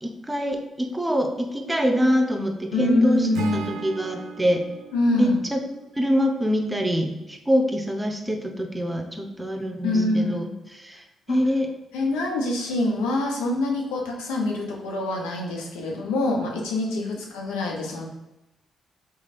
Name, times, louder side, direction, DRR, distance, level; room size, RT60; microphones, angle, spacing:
voice 1, 0.0-4.6 5.1-5.6 5.9-10.4 10.8-11.7, equal, 15° right, 4 dB, 0.9 m, -25 dB
voice 2, 2.7-3.7 4.9-5.4 9.8-10.5 11.3-11.4 11.9-18.1, left 2 dB, 80° left, 0 dB, 0.7 m, -25 dB
Acoustic guitar / Strum, 3.3-6.5, right 4 dB, 75° right, 0.5 m, -36 dB
3.8 x 3.2 x 4.1 m, 0.98 s
hypercardioid pair, 40°, 0 cm